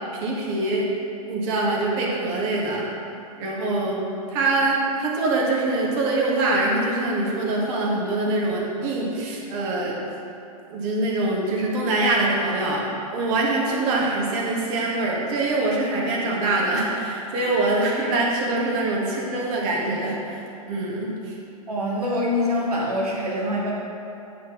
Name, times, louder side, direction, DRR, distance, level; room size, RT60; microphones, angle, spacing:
voice 1, 0.2-0.9 1.3-2.8 3.4-4.0 4.3-10.0 10.7-12.8 13.1-20.4 20.7-21.4, right 2 dB, 40° right, -3 dB, 1.6 m, -24 dB
voice 2, 21.7-23.7, left 1 dB, 85° right, -3 dB, 1.2 m, -24 dB
9.1 x 6.0 x 3.1 m, 2.8 s
hypercardioid pair, 115°, 19 cm